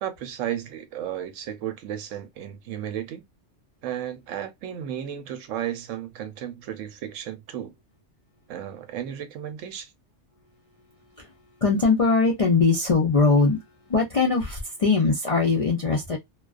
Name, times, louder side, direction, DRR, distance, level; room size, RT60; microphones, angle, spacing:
voice 1, 0.0-3.2 3.8-7.7 8.5-9.9, right 10 dB, 90° right, 1.0 m, -34 dB
voice 2, 11.6-13.6 13.9-16.2, left 4 dB, 60° left, 0.3 m, -21 dB
2.3 x 2.3 x 2.3 m
omnidirectional pair, 1.3 m